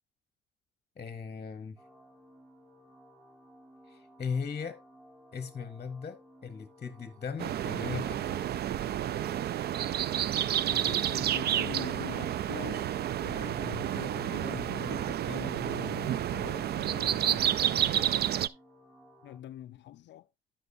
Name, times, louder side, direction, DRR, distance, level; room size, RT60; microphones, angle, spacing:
voice 1, 1.0-1.8 3.9-4.8 5.3-8.5, left 6 dB, 35° left, 0.8 m, -38 dB
sound 1, 1.8-19.4, equal, 15° right, 4.2 m, -57 dB
sound 2, 7.4-18.5, right 11 dB, 55° right, 0.4 m, -30 dB
voice 2, 10.7-12.9 13.2-18.2 19.2-20.3, left 13 dB, 65° left, 0.4 m, -44 dB
10.0 x 7.9 x 2.6 m
cardioid pair, 90°, 20 cm